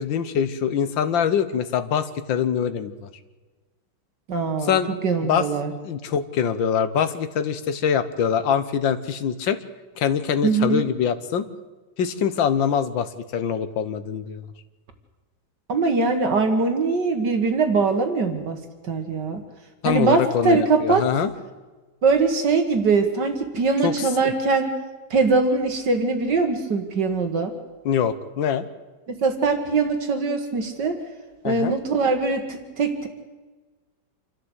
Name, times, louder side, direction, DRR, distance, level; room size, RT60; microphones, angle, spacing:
voice 1, 0.0-3.0 4.6-4.9 5.2-5.5 5.8-9.6 10.0-11.5 12.0-14.4 19.8-21.3 23.8-24.3 27.9-28.7 31.4-31.7, left 8 dB, 80° left, 12 dB, 1.8 m, -24 dB
voice 2, 4.3-5.7 10.4-10.9 15.7-19.4 19.8-21.1 22.0-24.7 25.1-27.5 29.1-31.0 31.4-33.1, right 4 dB, 65° right, 6 dB, 2.3 m, -22 dB
27.5 x 13.0 x 8.1 m, 1.3 s
omnidirectional pair, 2.0 m